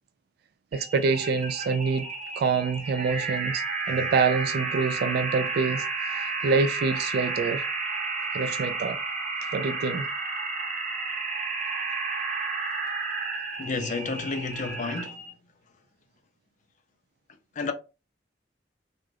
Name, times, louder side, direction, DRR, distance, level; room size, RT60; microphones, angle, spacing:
sound 1, 0.7-15.3, right 4 dB, 40° right, 0.8 m, -32 dB
voice 1, 0.7-2.1 2.4-5.8 6.2-7.6 8.3-9.0 9.5-10.1, right 4 dB, 60° right, 0.3 m, -26 dB
voice 2, 13.6-15.2 17.6-17.7, left 4 dB, 45° left, 0.5 m, -30 dB
2.5 x 2.3 x 3.2 m
head